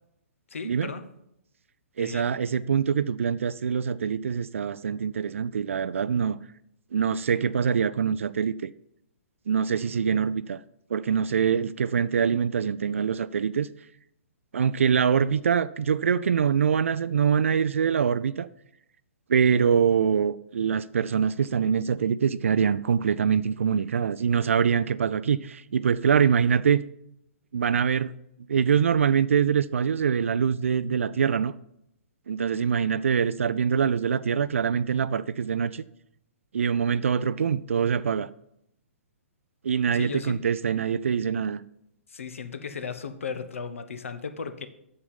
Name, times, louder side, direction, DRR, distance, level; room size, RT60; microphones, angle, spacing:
voice 1, 0.5-1.1 2.0-2.3 39.9-40.4 42.1-44.7, left 5 dB, 70° left, 1.1 m, -36 dB
voice 2, 2.0-6.4 6.9-8.7 9.5-10.6 10.9-13.7 14.5-18.5 19.3-26.8 27.5-28.1 28.5-31.5 32.3-35.8 36.5-38.3 39.6-41.6, right 7 dB, 65° right, 0.4 m, -24 dB
8.7 x 6.9 x 5.4 m
figure-of-eight pair, 125°, 8 cm